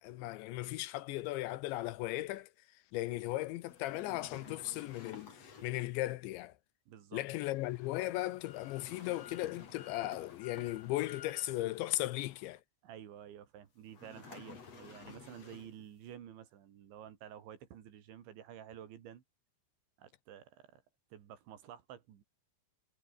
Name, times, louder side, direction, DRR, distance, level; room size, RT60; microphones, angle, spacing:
voice 1, 0.0-2.5 2.9-6.5 7.1-12.6, left 17 dB, 80° left, 3.0 m, -37 dB
sound 1, 3.6-5.9 8.4-11.2 13.9-15.9, left 5 dB, 35° left, 4.2 m, -53 dB
voice 2, 6.9-7.2 12.8-19.2 20.0-20.8 21.1-22.2, right 10 dB, 70° right, 4.8 m, -51 dB
sound 2, 7.4-12.6, left 9 dB, 55° left, 3.9 m, -56 dB
omnidirectional pair, 5.6 m